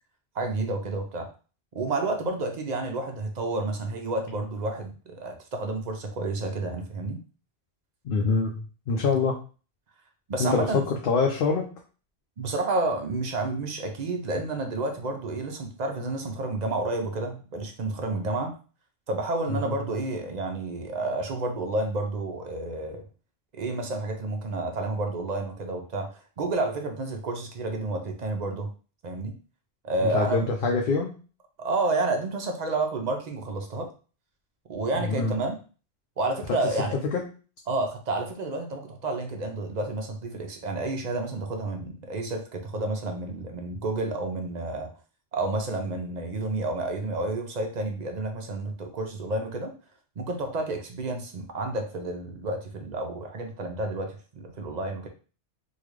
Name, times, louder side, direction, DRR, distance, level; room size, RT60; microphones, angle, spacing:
voice 1, 0.3-1.3 1.7-7.2 10.3-10.8 12.4-18.5 19.1-23.0 23.5-28.7 29.0-29.4 29.8-30.5 31.6-33.9 34.7-35.6 36.2-37.0 37.7-44.9 45.3-49.7 50.2-55.1, right 2 dB, 50° right, 3 dB, 0.6 m, -30 dB
voice 2, 8.0-9.4 10.4-11.7 19.5-19.7 30.0-31.2 35.0-35.3 37.1-37.3, left 4 dB, 60° left, 1 dB, 0.7 m, -25 dB
3.7 x 2.3 x 3.1 m, 0.36 s
omnidirectional pair, 1.1 m